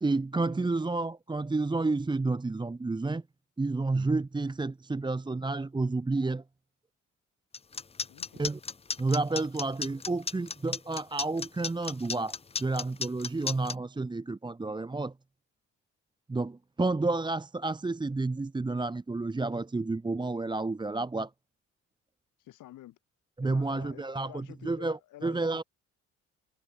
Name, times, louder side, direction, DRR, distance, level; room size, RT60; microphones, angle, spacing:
voice 1, 0.0-3.2 3.6-6.4 8.4-8.6 9.0-15.1 16.3-21.3 23.4-25.6, right 3 dB, 15° right, 0.9 m, -30 dB
sound 1, 7.5-13.7, left 5 dB, 20° left, 0.6 m, -34 dB
voice 2, 8.1-8.5 22.4-23.0 23.4-25.6, left 14 dB, 85° left, 3.2 m, -49 dB
cardioid pair, 90°, 30 cm